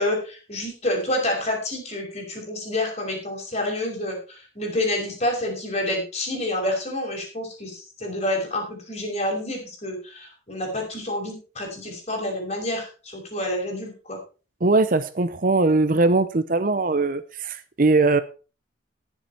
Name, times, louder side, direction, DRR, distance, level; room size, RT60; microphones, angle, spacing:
voice 1, 0.0-14.2, left 1 dB, 35° left, 1 dB, 5.4 m, -28 dB
voice 2, 14.6-18.2, right 3 dB, 45° right, 13 dB, 0.7 m, -20 dB
18.5 x 7.2 x 4.4 m, 0.35 s
head